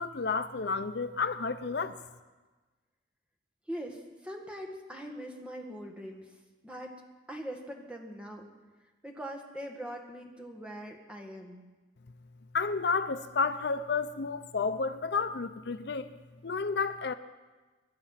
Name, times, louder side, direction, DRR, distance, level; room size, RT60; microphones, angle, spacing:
voice 1, 0.0-2.0 12.5-16.1 16.4-17.1, left 4 dB, 60° left, 11 dB, 0.5 m, -31 dB
voice 2, 3.7-6.3 6.6-6.9 7.3-8.5 9.0-11.6, equal, 5° right, 2 dB, 1.7 m, -42 dB
24.0 x 10.5 x 5.8 m, 1.2 s
head